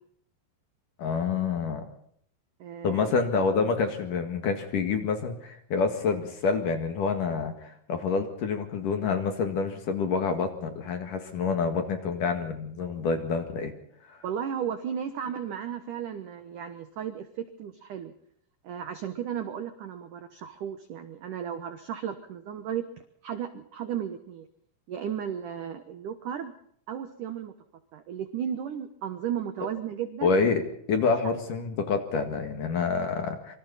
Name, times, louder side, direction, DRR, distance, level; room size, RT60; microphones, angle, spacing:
voice 1, 1.0-1.9 2.8-13.7 14.1-14.2 30.2-30.6 30.9-33.6, left 5 dB, 55° left, 6 dB, 2.8 m, -27 dB
voice 2, 2.6-3.1 14.2-18.1 18.6-22.8 23.2-24.5 24.9-26.5 26.9-27.5 27.9-30.3, right 9 dB, 85° right, 9 dB, 1.8 m, -34 dB
26.0 x 25.0 x 4.2 m, 0.66 s
omnidirectional pair, 5.6 m